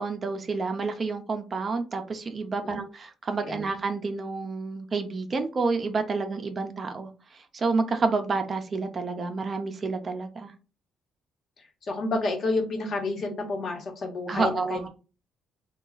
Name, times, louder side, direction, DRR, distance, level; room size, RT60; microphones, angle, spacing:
voice 1, 0.0-7.1 7.5-10.5 14.3-14.9, right 4 dB, 40° right, 7 dB, 0.6 m, -29 dB
voice 2, 11.8-14.9, left 2 dB, 55° left, 2 dB, 1.1 m, -30 dB
3.0 x 2.3 x 3.8 m, 0.34 s
cardioid pair, 90°, 0 cm